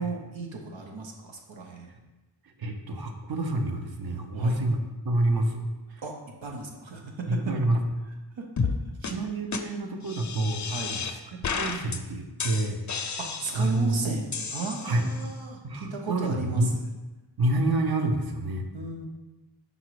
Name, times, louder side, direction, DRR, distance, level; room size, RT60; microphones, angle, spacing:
voice 1, 0.0-1.9 4.3-4.6 6.0-6.1 6.4-7.5 8.3-8.7 10.6-11.0 13.2-16.8 18.7-19.1, right 3 dB, 80° right, 1 dB, 1.0 m, -35 dB
voice 2, 2.6-5.6 5.9-6.0 7.3-7.8 9.0-11.0 11.5-13.2 13.5-14.0 14.8-15.1 15.6-16.7 17.4-18.6, right 2 dB, 50° right, 4 dB, 0.8 m, -28 dB
sound 1, 8.6-8.8 9.0-9.1 9.5-9.6 10.1-11.1 11.4-12.0 12.4-13.8 14.3-15.3, left 5 dB, 40° left, 0.5 m, -32 dB
5.4 x 4.0 x 4.7 m, 1.1 s
wide cardioid pair, 85°, 46 cm